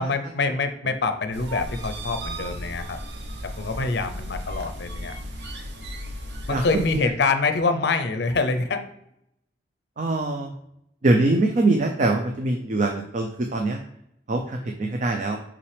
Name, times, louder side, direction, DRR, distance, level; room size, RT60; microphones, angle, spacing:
voice 1, 0.0-3.0 3.6-5.1 6.5-8.8, left 4 dB, 60° left, 8 dB, 0.5 m, -25 dB
sound 1, 1.3-7.0, equal, 65° right, 0.9 m, -35 dB
voice 2, 6.5-7.1 10.0-10.5 11.0-13.8 14.3-15.4, right 2 dB, 40° right, 3 dB, 0.5 m, -23 dB
5.7 x 5.1 x 3.3 m, 0.76 s
head